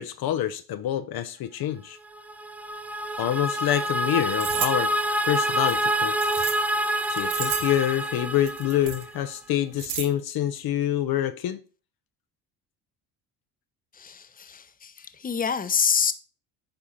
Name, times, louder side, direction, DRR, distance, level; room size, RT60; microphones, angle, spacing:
voice 1, 0.0-2.0 3.2-4.9 5.2-6.1 7.1-11.6, left 11 dB, 50° left, 0.8 m, -26 dB
sound 1, 2.1-9.3, right 1 dB, 5° right, 0.3 m, -27 dB
sound 2, 4.3-4.7 5.7-6.6 7.0-7.8 8.4-9.0 9.5-10.0, right 10 dB, 80° right, 1.1 m, -32 dB
voice 2, 13.9-16.1, left 6 dB, 20° left, 0.9 m, -27 dB
9.0 x 4.9 x 4.3 m
hypercardioid pair, 60°, 47 cm